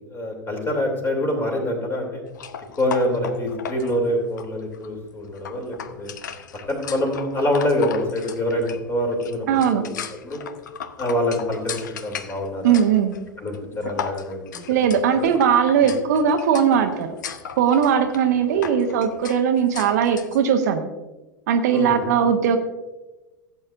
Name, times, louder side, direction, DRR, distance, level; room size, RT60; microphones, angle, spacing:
voice 1, 0.1-2.2 2.8-6.1 6.7-10.4 11.0-12.8 13.4-14.8 15.1-15.3 15.8-15.9 18.5-18.6 21.7-22.0, left 1 dB, 20° left, 2 dB, 2.9 m, -25 dB
sound 1, 2.3-20.4, left 8 dB, 65° left, 0.7 m, -37 dB
voice 2, 9.5-9.8 12.6-13.1 14.7-17.1 17.6-20.9 21.5-22.6, right 7 dB, 55° right, 6 dB, 0.9 m, -19 dB
16.0 x 8.3 x 2.5 m, 1.1 s
figure-of-eight pair, 85°, 11 cm